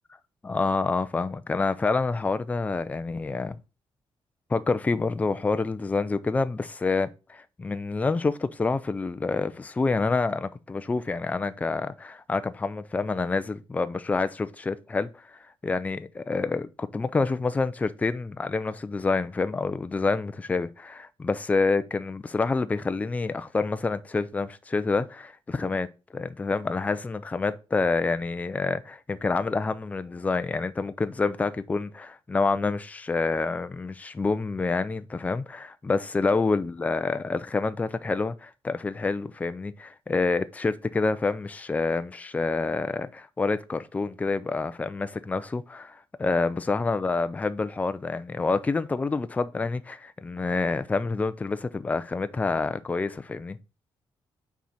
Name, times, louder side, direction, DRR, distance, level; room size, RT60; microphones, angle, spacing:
voice 1, 0.4-3.6 4.5-53.6, left 3 dB, 15° left, 0.4 m, -27 dB
6.0 x 4.4 x 4.1 m
wide cardioid pair, 165°, 9 cm